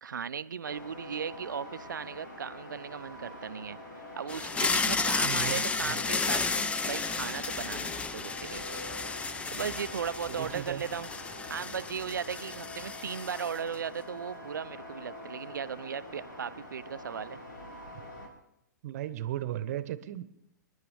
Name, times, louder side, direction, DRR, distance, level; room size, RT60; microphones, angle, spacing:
voice 1, 0.0-3.8 4.2-8.6 9.5-11.1 11.5-17.4, right 7 dB, 75° right, 15 dB, 0.5 m, -37 dB
sound 1, 0.6-18.3, left 1 dB, 70° left, 2.8 m, -45 dB
sound 2, 4.3-13.7, left 4 dB, 10° left, 0.6 m, -33 dB
voice 2, 5.2-5.9 10.3-10.8 18.8-20.2, right 12 dB, 55° right, 14 dB, 1.0 m, -36 dB
28.0 x 10.5 x 3.5 m, 0.84 s
figure-of-eight pair, 110°, 10 cm